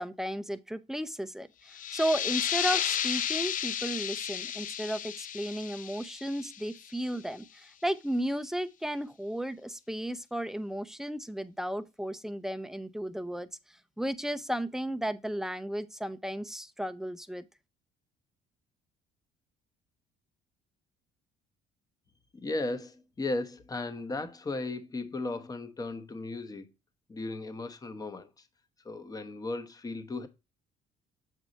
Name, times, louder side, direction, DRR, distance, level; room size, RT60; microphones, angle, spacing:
voice 1, 0.0-17.4, equal, 5° right, 0.6 m, -34 dB
sound 1, 1.7-7.1, left 10 dB, 50° left, 0.6 m, -33 dB
voice 2, 22.3-26.7 27.1-28.5 28.8-30.3, left 2 dB, 20° left, 1.0 m, -36 dB
7.3 x 4.8 x 3.9 m
cardioid pair, 110°, 17 cm